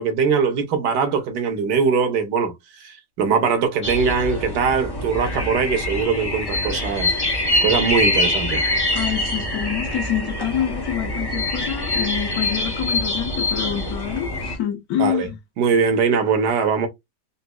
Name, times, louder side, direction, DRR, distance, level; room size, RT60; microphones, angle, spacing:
voice 1, 0.0-7.1 7.6-8.6 15.0-15.3 15.6-16.9, right 5 dB, 75° right, 1.4 m, -21 dB
sound 1, 3.8-14.6, left 1 dB, 30° left, 0.4 m, -24 dB
voice 2, 8.9-15.3, left 10 dB, 65° left, 1.2 m, -26 dB
4.0 x 2.6 x 2.3 m
omnidirectional pair, 1.8 m